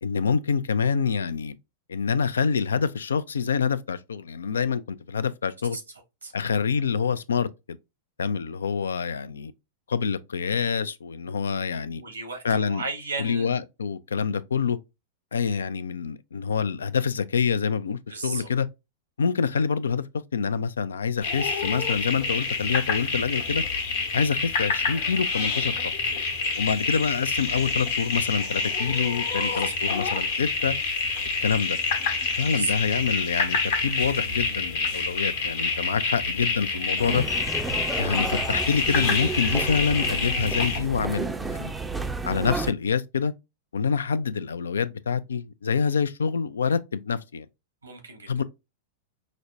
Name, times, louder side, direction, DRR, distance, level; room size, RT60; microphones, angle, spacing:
voice 1, 0.0-1.6 1.9-5.8 6.3-7.8 8.2-9.5 9.9-12.0 12.4-12.8 13.2-14.8 15.3-18.7 19.2-20.0 20.3-23.6 24.1-25.8 26.6-30.7 31.4-31.8 32.4-37.2 38.0-41.7 42.2-43.3 43.7-47.5 48.3-48.4, left 6 dB, 75° left, 0.3 m, -26 dB
voice 2, 11.9-13.5 18.1-18.5 29.2-29.6 29.9-30.0 32.5-32.8 47.8-48.4, right 3 dB, 85° right, 1.1 m, -34 dB
sound 1, 21.2-40.8, left 4 dB, 60° left, 1.0 m, -27 dB
sound 2, 37.0-42.7, right 3 dB, 10° right, 0.4 m, -32 dB
5.1 x 2.1 x 2.5 m
figure-of-eight pair, 100°, 0 cm